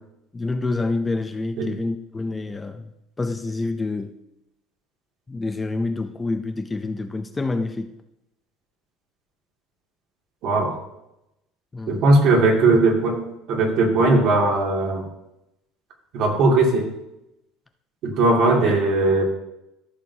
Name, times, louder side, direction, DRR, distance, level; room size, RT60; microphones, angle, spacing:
voice 1, 0.3-2.8 3.2-4.1 5.3-7.9 11.7-12.0 18.6-18.7, left 3 dB, 15° left, 8 dB, 0.5 m, -27 dB
voice 2, 10.4-10.8 11.9-13.2 13.5-15.0 16.1-16.9 18.0-19.2, right 2 dB, 60° right, 0 dB, 2.5 m, -18 dB
14.5 x 6.5 x 2.8 m, 0.87 s
cardioid pair, 135°, 0 cm